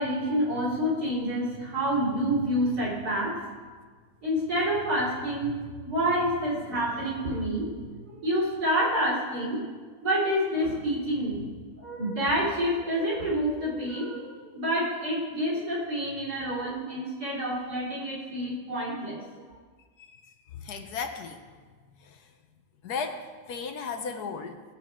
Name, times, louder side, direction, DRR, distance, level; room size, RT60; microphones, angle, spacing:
voice 1, 0.0-3.4 4.2-9.6 10.0-11.5 11.8-19.3, equal, 65° right, -7 dB, 4.4 m, -28 dB
voice 2, 20.0-21.4 22.0-22.3 22.8-24.6, left 5 dB, 70° left, 6 dB, 1.4 m, -36 dB
18.5 x 7.6 x 3.7 m, 1.5 s
omnidirectional pair, 1.8 m